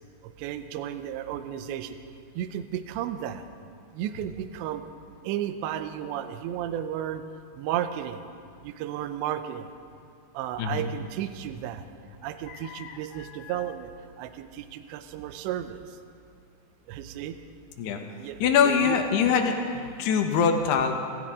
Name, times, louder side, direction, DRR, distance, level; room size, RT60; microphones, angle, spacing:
voice 1, 0.4-2.0 2.4-3.4 4.0-4.8 5.2-7.2 7.6-8.2 8.6-9.7 10.3-11.8 12.2-13.9 14.2-15.8 16.9-17.3 18.2-19.0, right 11 dB, 80° right, 9 dB, 2.8 m, -33 dB
voice 2, 10.6-10.9 12.5-13.6 17.8-18.0 18.4-20.9, left 6 dB, 70° left, 4 dB, 2.9 m, -24 dB
25.5 x 15.0 x 3.7 m, 2.3 s
omnidirectional pair, 5.3 m